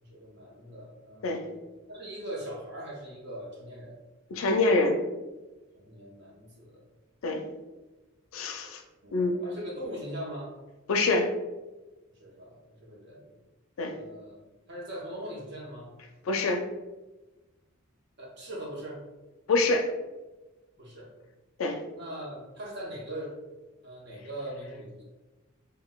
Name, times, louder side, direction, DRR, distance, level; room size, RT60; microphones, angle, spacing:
voice 1, 0.0-1.5 1.9-4.0 5.7-6.8 9.0-10.6 12.2-13.3 13.9-14.4 14.7-15.9 18.2-19.0 20.8-21.1 21.9-23.4 23.8-25.0, right 1 dB, 55° right, -4 dB, 0.8 m, -40 dB
voice 2, 4.3-5.0 7.2-7.4 8.3-8.8 9.1-9.4 10.9-11.3 13.8-13.9 16.2-16.6 19.5-19.9 21.6-21.8, left 3 dB, 80° left, 4 dB, 0.4 m, -25 dB
3.9 x 2.2 x 2.3 m, 1.1 s
head